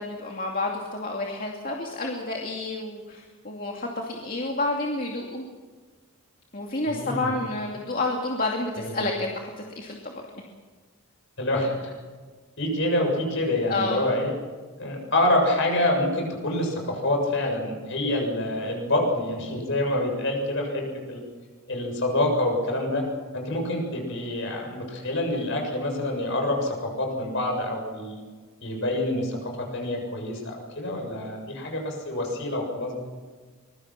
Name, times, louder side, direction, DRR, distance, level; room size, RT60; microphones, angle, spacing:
voice 1, 0.0-5.4 6.5-10.3 13.7-14.1, left 2 dB, 40° left, 0 dB, 2.5 m, -30 dB
voice 2, 6.9-7.3 8.8-8.9 11.4-11.9 12.6-14.3 14.8-21.2 21.7-23.0 23.3-28.2 28.6-33.0, left 1 dB, 60° left, 2 dB, 7.2 m, -26 dB
24.5 x 22.5 x 5.9 m, 1.5 s
head